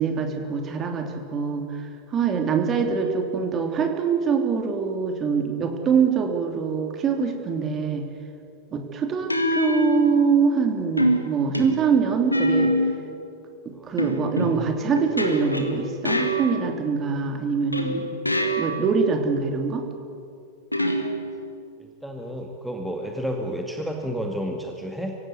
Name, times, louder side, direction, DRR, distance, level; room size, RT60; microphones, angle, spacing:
voice 1, 0.0-8.1 8.7-12.8 13.6-18.2 18.6-19.9, right 6 dB, 25° right, 4 dB, 3.1 m, -24 dB
sound 1, 7.2-7.5 9.3-10.5 11.0-13.2 14.0-17.0 17.7-19.0 20.7-21.6, equal, 85° left, 1.8 m, -25 dB
voice 2, 21.8-25.2, equal, ahead, 1 dB, 2.1 m, -31 dB
24.5 x 16.5 x 9.5 m, 2.5 s
figure-of-eight pair, 90°, 0 cm